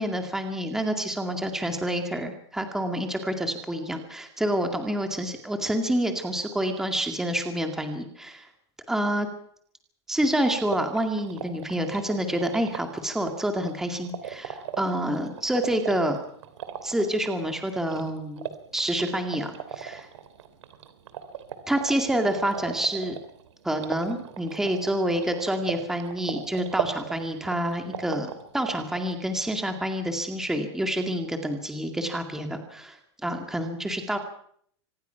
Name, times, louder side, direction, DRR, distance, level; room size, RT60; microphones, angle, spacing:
voice 1, 0.0-8.5 8.9-9.3 10.1-16.2 16.8-18.5 18.7-20.1 21.7-23.2 23.6-34.2, right 1 dB, 5° right, 5 dB, 2.1 m, -28 dB
sound 1, 10.4-29.1, right 9 dB, 85° right, 3.2 m, -39 dB
25.5 x 19.5 x 5.8 m, 0.63 s
supercardioid pair, 165°, 15 cm